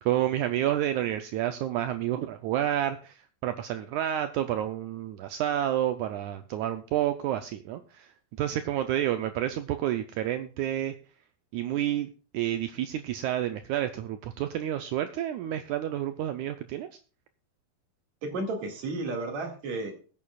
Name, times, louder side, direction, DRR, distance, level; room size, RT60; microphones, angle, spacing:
voice 1, 0.0-8.1 8.4-10.9 11.5-16.9, right 12 dB, 85° right, 8 dB, 1.7 m, -29 dB
voice 2, 18.2-20.1, right 2 dB, 55° right, 2 dB, 3.2 m, -33 dB
21.5 x 8.6 x 2.4 m, 0.38 s
omnidirectional pair, 4.1 m